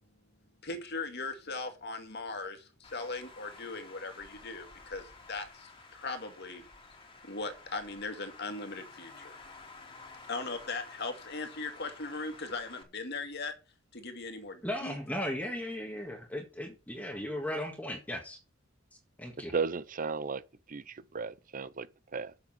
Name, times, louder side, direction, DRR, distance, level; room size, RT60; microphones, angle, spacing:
voice 1, 0.6-6.7 7.2-9.4 10.3-13.5 13.9-15.0, left 3 dB, 55° left, 2.2 m, -39 dB
Traffic noise roadway noise, 2.8-12.8, left 3 dB, 25° left, 2.7 m, -52 dB
voice 2, 14.6-18.4 19.2-19.5, left 1 dB, 10° left, 1.8 m, -36 dB
voice 3, 19.5-20.4 20.7-22.3, right 5 dB, 40° right, 0.7 m, -35 dB
7.4 x 6.7 x 7.8 m
head